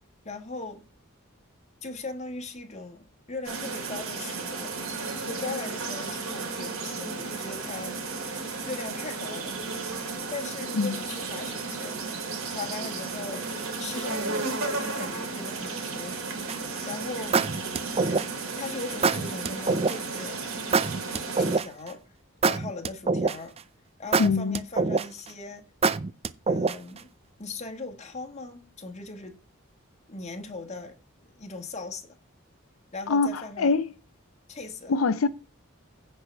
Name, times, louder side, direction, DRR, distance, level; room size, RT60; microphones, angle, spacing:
voice 1, 0.2-0.8 1.8-4.8 5.3-8.0 8.6-9.6 10.3-12.0 12.5-13.5 13.8-16.2 16.9-17.4 18.6-20.7 21.4-22.1 22.4-23.6 24.0-25.7 26.5-27.1 27.4-29.4 30.1-31.0 31.4-32.2 32.9-33.8 34.5-34.9, left 3 dB, 35° left, 1.6 m, -39 dB
sound 1, 3.4-21.6, right 3 dB, 80° right, 3.0 m, -34 dB
sound 2, 16.5-16.8 17.3-18.5 19.0-20.0 20.7-21.9 22.4-23.6 24.1-25.3 25.8-27.0, right 4 dB, 30° right, 0.4 m, -24 dB
voice 2, 24.2-24.6 33.1-33.9 34.9-35.3, left 4 dB, 80° left, 0.5 m, -24 dB
16.0 x 5.5 x 3.4 m
head